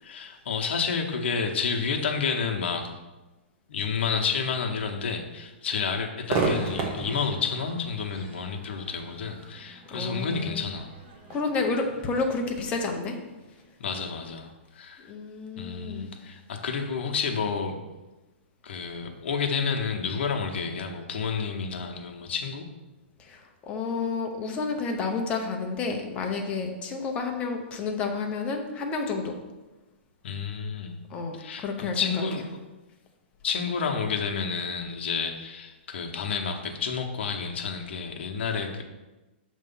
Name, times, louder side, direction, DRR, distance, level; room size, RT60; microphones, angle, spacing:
voice 1, 0.0-2.9 3.7-10.9 13.8-15.1 15.6-17.8 18.6-22.7 30.2-31.0 31.4-32.6 33.4-38.8, left 5 dB, 65° left, 3 dB, 0.9 m, -30 dB
Crowd / Fireworks, 6.3-13.6, right 3 dB, 25° right, 0.9 m, -35 dB
voice 2, 9.9-10.7 11.3-13.2 15.1-16.1 23.2-29.4 31.1-32.1, left 4 dB, 15° left, 2 dB, 0.7 m, -30 dB
6.6 x 3.1 x 5.4 m, 1.1 s
hypercardioid pair, 160°, 7 cm